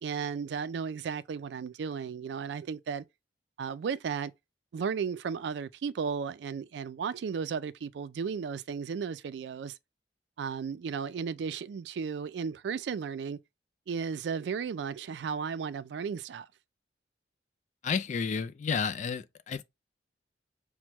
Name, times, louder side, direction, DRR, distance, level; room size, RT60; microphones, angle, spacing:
voice 1, 0.0-3.0 3.6-4.3 4.7-9.7 10.4-13.4 13.9-16.5, right 6 dB, 70° right, 0.3 m, -34 dB
voice 2, 17.8-19.6, left 6 dB, 40° left, 0.3 m, -31 dB
6.0 x 2.1 x 2.9 m
head